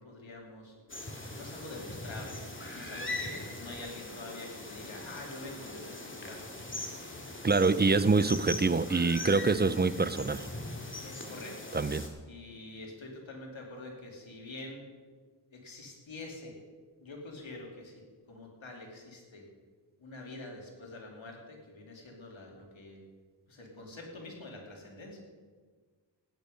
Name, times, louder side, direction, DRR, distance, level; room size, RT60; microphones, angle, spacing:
voice 1, 0.0-6.4 7.4-7.8 11.0-11.8 12.3-14.8 15.5-16.6 17.0-18.0 18.3-19.5 20.0-23.0 23.5-25.2, left 2 dB, 80° left, 2.9 m, -46 dB
sound 1, 0.9-12.1, left 2 dB, 25° left, 2.3 m, -41 dB
voice 2, 7.4-10.5 11.7-12.1, right 4 dB, 20° right, 0.6 m, -25 dB
15.5 x 10.0 x 5.2 m
cardioid pair, 55°, 46 cm